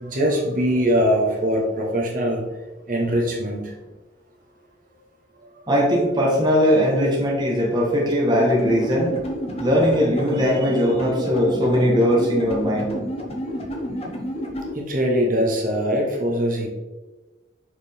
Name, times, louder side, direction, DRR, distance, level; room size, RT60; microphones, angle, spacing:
voice 1, 0.0-2.4 2.9-3.7 14.7-16.7, equal, 45° right, -1 dB, 1.2 m, -22 dB
voice 2, 5.7-9.2 9.6-13.0, equal, 25° right, -3 dB, 1.2 m, -20 dB
sound 1, 8.4-14.7, equal, 30° left, 1.0 m, -30 dB
6.5 x 4.9 x 3.5 m, 1.2 s
head